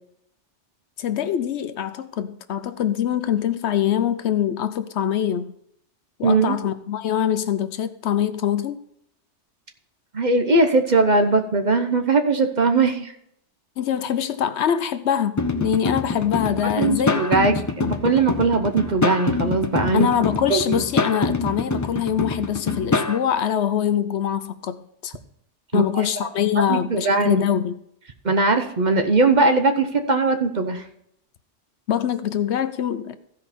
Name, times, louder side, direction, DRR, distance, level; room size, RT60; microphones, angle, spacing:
voice 1, 1.0-5.5 6.2-8.8 13.8-17.2 17.8-17.9 19.9-25.2 25.7-27.8 31.9-33.2, left 9 dB, 70° left, 0.9 m, -24 dB
voice 2, 6.2-6.6 10.1-13.1 16.8-20.1 20.5-20.8 25.7-25.8 26.7-27.4 28.2-30.8, right 3 dB, 40° right, 0.9 m, -20 dB
sound 1, 15.4-23.2, left 3 dB, 25° left, 0.4 m, -25 dB
15.5 x 5.3 x 4.2 m
omnidirectional pair, 1.2 m